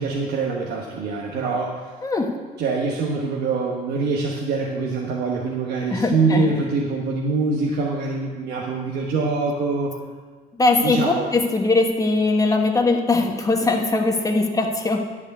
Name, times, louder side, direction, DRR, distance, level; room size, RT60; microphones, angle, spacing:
voice 1, 0.0-1.8 2.6-9.9 10.8-11.3, right 4 dB, 70° right, -1 dB, 1.2 m, -24 dB
voice 2, 2.0-2.4 5.9-6.4 10.6-15.0, left 3 dB, 20° left, 2 dB, 1.1 m, -20 dB
11.0 x 4.8 x 8.0 m, 1.4 s
cardioid pair, 110°, 17 cm